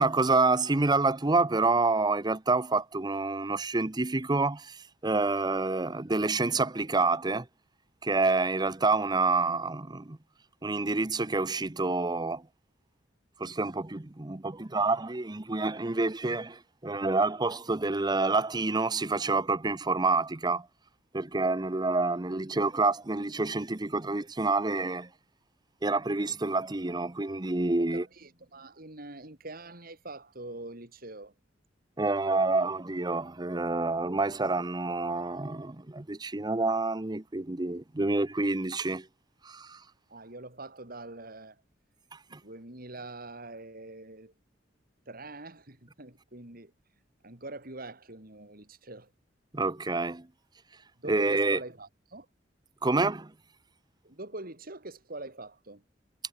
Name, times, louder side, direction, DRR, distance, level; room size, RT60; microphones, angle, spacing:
voice 1, 0.0-7.5 8.0-10.2 10.6-12.4 13.4-20.7 21.1-25.1 25.8-28.0 32.0-39.1 39.4-39.8 42.1-42.4 49.5-50.3 51.1-51.6 52.8-53.3, right 3 dB, 20° right, 0.9 m, -28 dB
voice 2, 27.8-31.3 40.1-41.6 42.4-44.3 45.1-46.7 47.2-49.1 51.0-52.3 54.0-55.8, right 2 dB, 50° right, 4.7 m, -44 dB
head